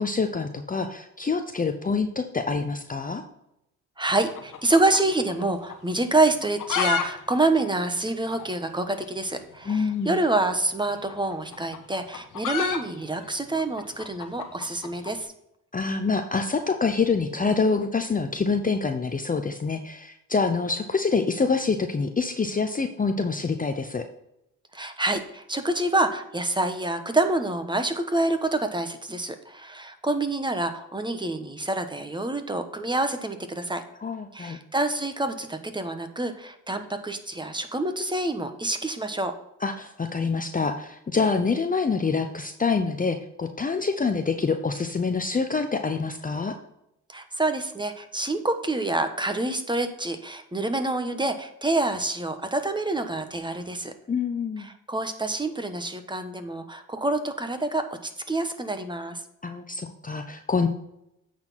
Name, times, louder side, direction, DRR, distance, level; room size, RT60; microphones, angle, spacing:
voice 1, 0.0-3.2 9.7-10.2 15.7-24.0 34.0-34.6 39.6-46.6 54.1-54.7 59.4-60.7, left 4 dB, 25° left, 6 dB, 0.7 m, -26 dB
voice 2, 4.0-15.3 24.7-33.8 34.3-39.3 47.1-53.9 54.6-59.2, right 2 dB, 15° right, 8 dB, 1.2 m, -27 dB
sound 1, 4.1-5.4 5.7-5.8 6.3-7.1 7.3-7.4 7.6-7.7 8.3-8.4 9.6-9.8 10.9-15.2, left 7 dB, 70° left, 1.2 m, -30 dB
8.7 x 4.3 x 5.7 m, 0.82 s
supercardioid pair, 65°, 33 cm